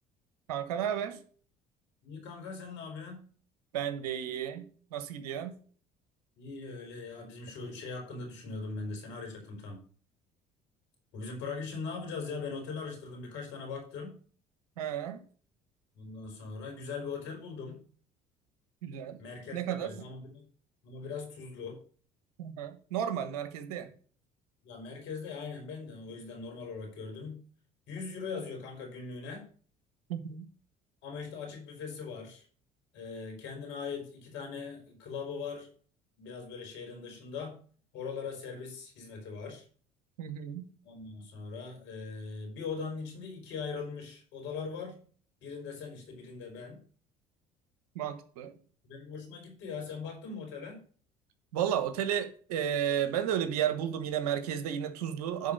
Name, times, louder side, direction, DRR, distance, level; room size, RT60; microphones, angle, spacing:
voice 1, 0.5-1.2 3.7-5.5 14.8-15.2 18.8-19.2 19.5-19.9 22.4-23.9 30.1-30.4 40.2-40.7 47.9-48.5 51.5-55.5, right 9 dB, 85° right, 10 dB, 1.3 m, -33 dB
voice 2, 2.0-3.2 6.4-9.8 11.1-14.1 15.9-17.8 19.2-20.4 20.8-21.8 24.6-27.4 27.9-29.4 31.0-32.4 32.9-35.7 36.2-37.5 37.9-39.6 40.8-45.0 45.4-46.8 48.8-50.8, left 4 dB, 75° left, 2 dB, 4.5 m, -40 dB
11.0 x 4.2 x 6.7 m, 0.44 s
hypercardioid pair, 65°, 19 cm